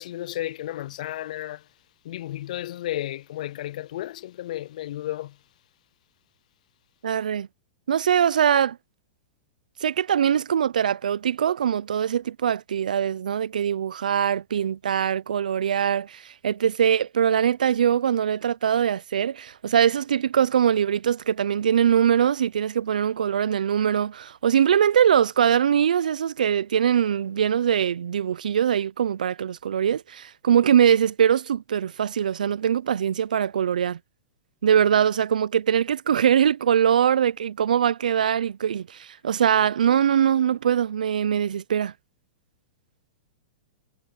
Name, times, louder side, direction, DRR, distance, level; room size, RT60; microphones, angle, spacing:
voice 1, 0.0-1.7 2.0-5.4, left 14 dB, 65° left, 0.5 m, -33 dB
voice 2, 7.0-7.5 7.9-8.8 9.8-34.0 34.6-41.9, right 8 dB, 80° right, 0.6 m, -22 dB
hypercardioid pair, 120°, 4 cm